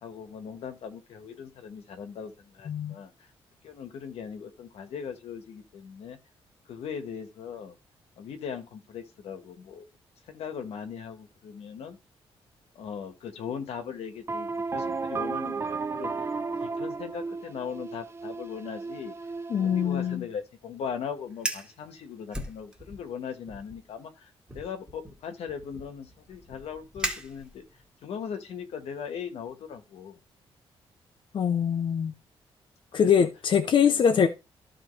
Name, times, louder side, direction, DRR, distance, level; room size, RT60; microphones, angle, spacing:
voice 1, 0.0-3.1 3.6-6.2 6.7-7.8 8.2-9.8 10.3-12.0 12.7-16.3 16.6-19.1 19.6-27.6 28.0-30.2 32.9-33.3 33.9-34.3, left 7 dB, 85° left, 1.5 m, -39 dB
sound 1, 14.3-20.2, right 4 dB, 25° right, 0.4 m, -34 dB
voice 2, 19.5-20.2 31.3-32.1 32.9-34.3, left 7 dB, 50° left, 0.9 m, -23 dB
Fire, 21.3-21.7 22.3-23.1 23.5-23.8 24.5-27.8, right 1 dB, 10° right, 1.7 m, -37 dB
13.0 x 4.4 x 3.3 m
cardioid pair, 115°, 10 cm